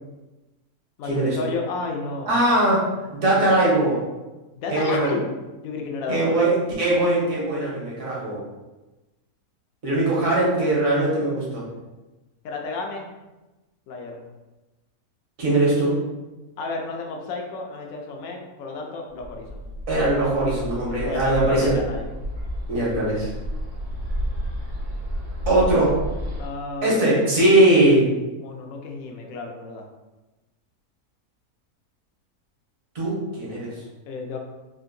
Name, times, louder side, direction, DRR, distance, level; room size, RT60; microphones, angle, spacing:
voice 1, 1.0-2.4 4.6-5.2 5.6-6.5 12.4-13.1 13.9-14.3 16.6-19.6 21.0-22.1 26.4-27.2 28.4-29.9 34.1-34.4, left 3 dB, 70° left, 2 dB, 1.0 m, -32 dB
voice 2, 2.3-2.8 3.1-4.0 4.7-5.2 6.1-8.4 9.8-11.6 15.4-16.0 19.9-21.8 22.7-23.3 25.5-26.0 26.8-28.1 32.9-33.7, right 1 dB, 65° right, -5 dB, 1.4 m, -20 dB
Bird, 19.2-26.5, equal, 50° right, 0.9 m, -31 dB
3.6 x 2.5 x 2.6 m, 1.1 s
omnidirectional pair, 1.6 m